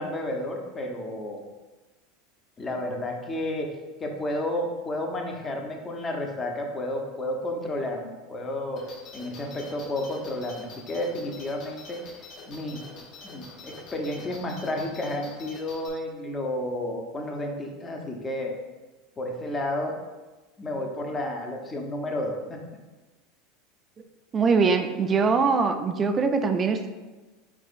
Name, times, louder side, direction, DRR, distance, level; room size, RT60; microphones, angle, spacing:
voice 1, 0.0-1.4 2.6-3.7 4.0-8.8 9.1-12.1 12.5-12.8 13.2-18.5 19.2-19.9 20.6-22.6, left 1 dB, 25° left, 2 dB, 0.8 m, -31 dB
sound 1, 8.8-15.9, left 3 dB, 50° left, 1.2 m, -45 dB
voice 2, 24.3-26.9, right 4 dB, 30° right, 7 dB, 0.4 m, -22 dB
4.8 x 4.3 x 2.5 m, 1.2 s
hypercardioid pair, 95°, 0 cm